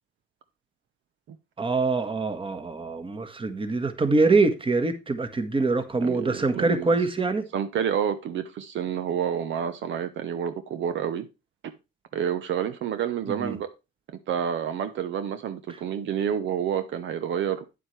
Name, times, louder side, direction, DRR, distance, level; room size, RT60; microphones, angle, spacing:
voice 1, 1.6-7.5 13.3-13.6, right 3 dB, 25° right, 1.4 m, -24 dB
voice 2, 6.0-6.9 7.5-11.3 12.1-13.7 14.3-17.6, right 8 dB, 70° right, 0.8 m, -29 dB
9.4 x 7.8 x 3.3 m
cardioid pair, 90°, 20 cm